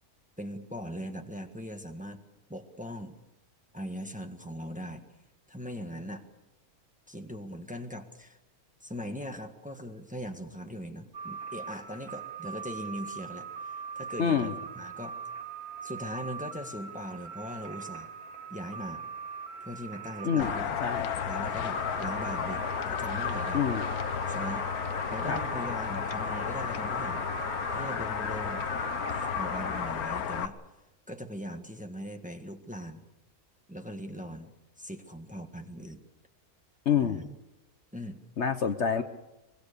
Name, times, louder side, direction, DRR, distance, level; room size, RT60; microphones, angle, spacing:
voice 1, 0.4-2.2 2.5-3.2 3.7-5.0 5.5-6.2 7.1-8.4 8.8-15.2 15.8-18.1 18.5-19.0 19.6-20.8 21.2-23.6 24.3-24.7 25.1-27.2 27.7-28.7 29.1-30.6 31.1-33.0 33.7-34.5 34.8-36.0 37.0-37.4 37.9-38.2, equal, 5° right, 5 dB, 1.5 m, -40 dB
sound 1, 11.1-29.9, right 6 dB, 85° right, 2.5 m, -41 dB
voice 2, 14.2-14.5 20.2-20.5 20.8-21.1 23.5-23.8 25.3-25.4 36.8-37.2 38.4-39.0, left 7 dB, 55° left, 9 dB, 1.2 m, -27 dB
sound 2, 20.4-30.5, left 8 dB, 80° left, 1.5 m, -33 dB
24.5 x 22.0 x 6.8 m, 0.98 s
omnidirectional pair, 1.6 m